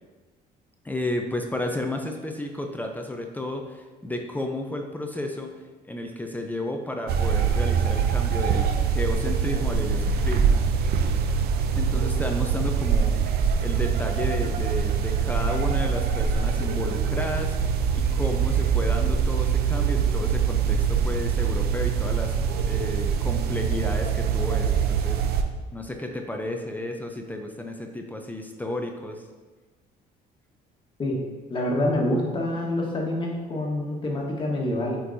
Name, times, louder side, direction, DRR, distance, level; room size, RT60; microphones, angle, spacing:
voice 1, 0.8-5.5 5.8-10.6 11.8-13.2 13.6-22.4 22.7-25.2 25.7-29.2, left 1 dB, 10° left, 3 dB, 0.5 m, -32 dB
sound 1, 7.1-25.4, right 6 dB, 70° right, 0.6 m, -24 dB
voice 2, 31.5-35.0, left 1 dB, 30° left, -1 dB, 1.4 m, -26 dB
8.1 x 4.6 x 2.7 m, 1.3 s
cardioid pair, 110°, 17 cm